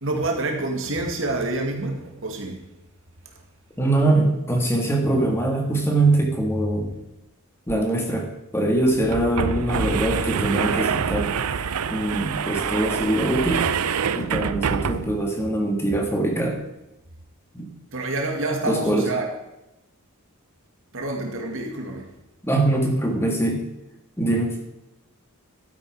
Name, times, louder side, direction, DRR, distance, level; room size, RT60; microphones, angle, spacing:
voice 1, 0.0-2.6 14.2-14.3 17.9-19.3 20.9-22.1, right 2 dB, 60° right, 2 dB, 2.1 m, -27 dB
voice 2, 3.8-6.9 7.7-8.3 8.5-11.3 11.9-13.7 14.2-16.6 17.5-17.7 18.6-19.1 22.4-23.6 24.2-24.5, right 2 dB, 10° left, 2 dB, 1.8 m, -22 dB
sound 1, 7.7-7.8 8.1-8.2 8.9-15.3, right 6 dB, 85° right, 0.6 m, -26 dB
12.0 x 9.7 x 4.8 m, 0.93 s
head